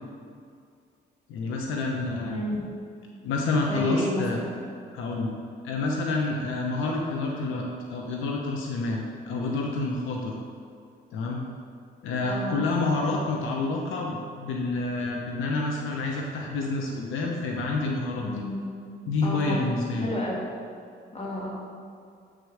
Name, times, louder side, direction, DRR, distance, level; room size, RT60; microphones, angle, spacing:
voice 1, 1.3-2.4 3.2-4.4 4.9-5.3 5.6-10.4 11.1-11.4 12.0-18.3 19.1-20.1, left 3 dB, 85° left, 0 dB, 1.0 m, -28 dB
voice 2, 2.2-2.7 3.7-4.6 12.2-12.5 18.2-18.6 19.2-19.7 20.0-20.5 21.1-21.5, left 1 dB, 30° left, -3 dB, 2.3 m, -31 dB
7.8 x 5.1 x 6.3 m, 2.3 s
cardioid pair, 90°, 20 cm